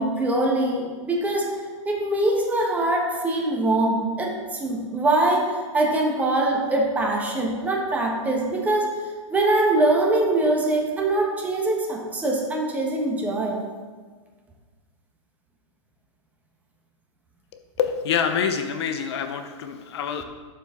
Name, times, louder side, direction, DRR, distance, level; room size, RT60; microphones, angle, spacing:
voice 1, 0.0-1.5 1.9-5.5 5.7-8.9 9.3-13.6, right 2 dB, 10° right, 0 dB, 1.0 m, -23 dB
voice 2, 17.8-20.2, left 7 dB, 55° left, 8 dB, 0.7 m, -26 dB
11.5 x 4.6 x 3.6 m, 1.5 s
hypercardioid pair, 150°, 17 cm